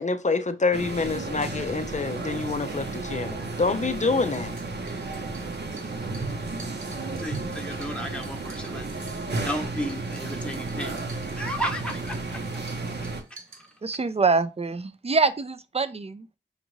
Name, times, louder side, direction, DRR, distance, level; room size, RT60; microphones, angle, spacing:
voice 1, 0.0-4.5, left 4 dB, 35° left, 0.4 m, -26 dB
sound 1, 0.7-13.2, right 3 dB, 55° right, 0.8 m, -33 dB
sound 2, 4.3-14.2, right 4 dB, 90° right, 1.0 m, -51 dB
voice 2, 7.2-9.0 9.4-12.4 13.6-13.7, equal, 5° left, 0.9 m, -34 dB
voice 3, 13.8-16.4, right 4 dB, 30° right, 0.4 m, -25 dB
5.2 x 2.5 x 3.0 m
wide cardioid pair, 80°, 20 cm